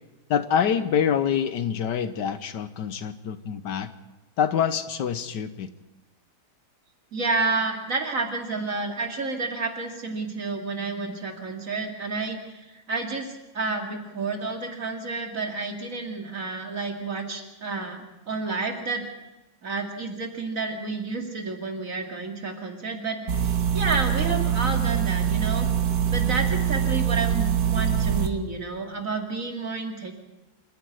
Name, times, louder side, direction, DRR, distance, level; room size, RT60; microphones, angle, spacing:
voice 1, 0.3-3.9 4.4-5.7, left 8 dB, 70° left, 12 dB, 1.4 m, -26 dB
voice 2, 7.1-19.0 19.6-25.7 26.1-30.1, right 3 dB, 45° right, 3 dB, 2.7 m, -30 dB
sound 1, 23.3-28.3, right 8 dB, 65° right, 1.9 m, -24 dB
26.5 x 10.5 x 9.5 m, 1.0 s
omnidirectional pair, 2.0 m